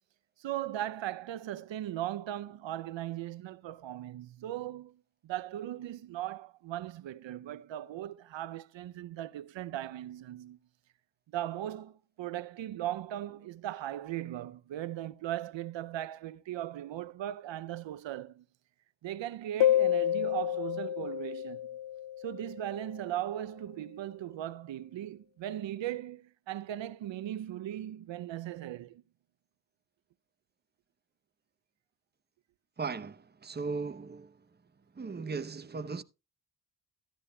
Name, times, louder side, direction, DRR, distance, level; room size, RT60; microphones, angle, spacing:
voice 1, 0.4-10.6 11.3-18.4 19.0-21.6 22.2-29.0, right 12 dB, 80° right, 0.6 m, -38 dB
sound 1, 19.6-22.9, left 12 dB, 65° left, 0.5 m, -29 dB
voice 2, 32.8-34.3 35.0-36.0, right 4 dB, 25° right, 0.7 m, -37 dB
13.5 x 11.5 x 2.2 m
cardioid pair, 75°, 44 cm